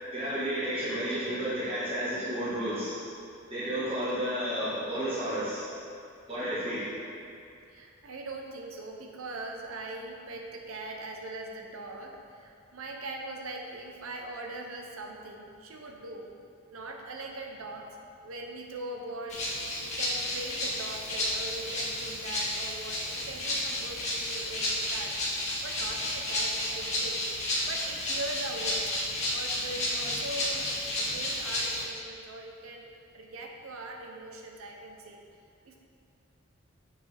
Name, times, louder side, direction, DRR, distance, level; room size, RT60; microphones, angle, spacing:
voice 1, 0.1-3.0 3.5-5.6 6.3-6.9, equal, 25° right, -11 dB, 1.4 m, -31 dB
voice 2, 7.7-16.3 16.7-17.9 18.2-25.2 25.6-27.3 27.7-28.8 29.3-35.2 35.6-35.8, right 2 dB, 80° right, 2 dB, 0.7 m, -41 dB
Rattle (instrument), 19.3-31.8, left 1 dB, 30° left, 1.3 m, -32 dB
7.2 x 4.8 x 3.4 m, 2.5 s
head